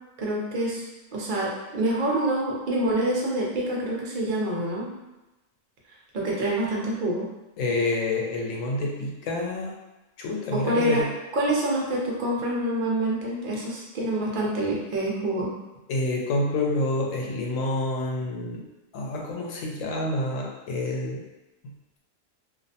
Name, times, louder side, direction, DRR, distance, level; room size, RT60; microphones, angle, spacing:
voice 1, 0.2-0.8 1.1-4.9 6.1-7.3 10.5-15.5, right 1 dB, 50° right, -3 dB, 0.6 m, -26 dB
voice 2, 7.6-9.7 10.2-11.1 15.9-18.6 18.9-21.2, left 2 dB, 80° left, -1 dB, 1.0 m, -28 dB
2.4 x 2.0 x 2.7 m, 1.0 s
omnidirectional pair, 1.3 m